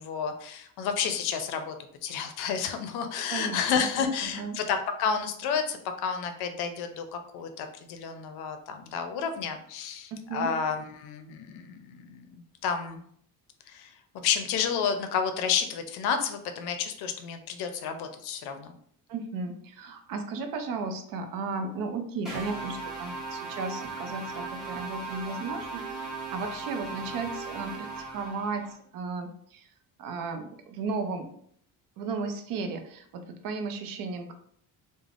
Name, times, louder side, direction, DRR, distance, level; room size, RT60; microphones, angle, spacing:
voice 1, 0.0-1.7 2.0-13.0 13.7-13.9 14.2-18.7, left 6 dB, 85° left, 7 dB, 0.5 m, -31 dB
voice 2, 3.3-3.6 4.0-4.6 10.1-10.5 19.1-29.7 30.0-31.3 32.0-34.3, right 4 dB, 60° right, 6 dB, 0.5 m, -35 dB
sound 1, 22.2-28.7, right 3 dB, ahead, 0.8 m, -38 dB
3.3 x 2.1 x 2.4 m, 0.65 s
cardioid pair, 160°, 37 cm